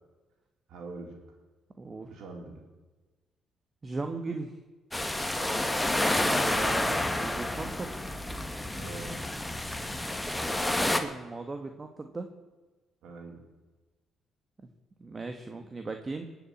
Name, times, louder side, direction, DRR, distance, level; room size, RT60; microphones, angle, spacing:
voice 1, 0.7-1.2 2.1-2.6 5.3-5.8 8.8-9.3 13.0-13.4, right 3 dB, 80° right, 2 dB, 4.0 m, -43 dB
voice 2, 1.8-2.1 3.8-4.6 6.4-8.2 10.7-12.3 15.0-16.2, right 3 dB, 30° right, 5 dB, 1.5 m, -37 dB
sound 1, 4.9-11.0, left 1 dB, 10° left, 1.6 m, -29 dB
20.0 x 7.4 x 8.7 m, 1.2 s
cardioid pair, 90°, 0 cm